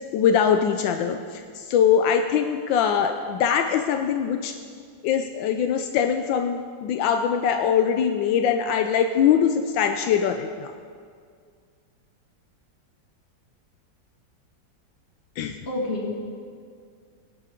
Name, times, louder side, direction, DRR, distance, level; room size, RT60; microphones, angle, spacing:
voice 1, 0.1-4.5 5.0-10.7 15.4-15.6, left 8 dB, 80° left, 6 dB, 1.3 m, -22 dB
voice 2, 15.6-16.2, left 2 dB, 35° left, -3 dB, 2.2 m, -28 dB
17.0 x 11.0 x 3.8 m, 2.1 s
omnidirectional pair, 2.1 m